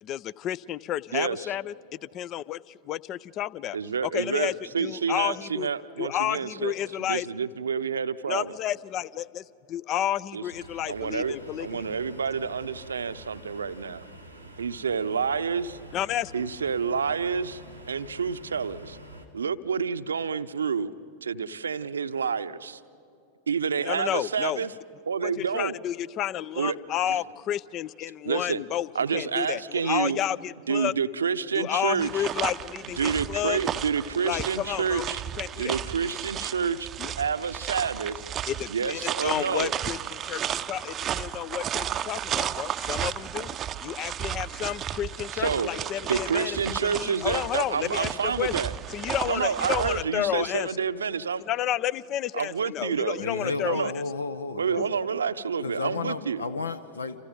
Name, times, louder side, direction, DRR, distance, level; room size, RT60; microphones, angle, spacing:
voice 1, 0.0-3.8 4.0-4.5 4.8-5.7 6.0-7.3 8.3-11.9 15.9-16.3 23.8-24.6 25.2-30.9 31.5-33.6 34.2-35.8 37.0-37.1 38.5-43.6 43.8-48.5 48.9-50.8 51.5-54.0 54.8-54.9, left 12 dB, 35° left, 23 dB, 0.5 m, -31 dB
voice 2, 1.1-1.5 3.7-6.7 7.0-8.6 10.3-10.4 10.9-14.1 14.6-15.7 16.3-17.5 17.9-19.0 19.3-20.9 21.2-22.8 23.5-24.7 25.1-25.8 26.6-26.8 27.1-27.2 28.2-28.6 28.9-30.2 30.7-32.3 33.0-35.2 35.6-36.9 37.2-38.2 38.7-39.7 45.3-45.7 46.1-48.7 49.3-51.4 52.4-53.2 53.6-53.9 54.6-56.4, right 6 dB, 70° right, 13 dB, 0.7 m, -28 dB
sound 1, 10.5-19.3, right 1 dB, 90° left, 2.1 m, -47 dB
sound 2, 32.0-50.0, right 9 dB, 25° right, 0.6 m, -33 dB
voice 3, 53.2-54.9 55.6-57.2, left 3 dB, 75° left, 14 dB, 0.7 m, -32 dB
29.0 x 28.0 x 5.2 m, 2.6 s
figure-of-eight pair, 90°, 0 cm